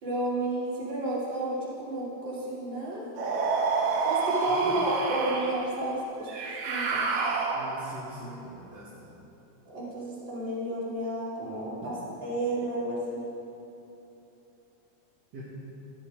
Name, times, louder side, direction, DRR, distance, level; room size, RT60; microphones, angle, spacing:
voice 1, 0.0-3.1 4.1-7.1 9.7-11.9 12.2-13.2, right 1 dB, 40° right, -8 dB, 3.9 m, -31 dB
sound 1, 3.2-5.6 6.3-7.9, right 4 dB, 80° right, 2.5 m, -28 dB
voice 2, 7.5-9.1 11.8-11.9 15.3-15.4, right 1 dB, 60° right, -10 dB, 3.2 m, -43 dB
15.0 x 10.5 x 5.1 m, 3.0 s
omnidirectional pair, 3.3 m